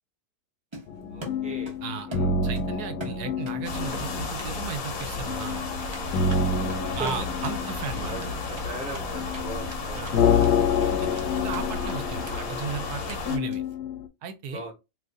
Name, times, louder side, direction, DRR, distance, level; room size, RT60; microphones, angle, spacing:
Run, 0.7-1.8 2.1-3.6 3.9-4.5 4.8-5.1 5.9-9.4 9.7-9.8 10.0-10.5 10.8-11.6 11.9-12.0 12.2-12.3 12.6-12.7 13.1-13.2 13.5-13.7, right 1 dB, 30° right, 0.6 m, -42 dB
sound 1, 0.9-14.1, left 5 dB, 85° left, 1.1 m, -28 dB
voice 1, 1.1-1.7 2.1-2.3 5.9-6.5 7.0-7.1 8.1-10.1 14.5-14.7, right 2 dB, 5° right, 0.8 m, -39 dB
voice 2, 2.4-5.6 7.0-8.1 9.9-13.6 14.2-14.6, right 6 dB, 80° right, 1.1 m, -36 dB
sound 2, 3.6-13.4, left 4 dB, 60° left, 1.2 m, -33 dB
2.8 x 2.5 x 3.5 m
omnidirectional pair, 1.7 m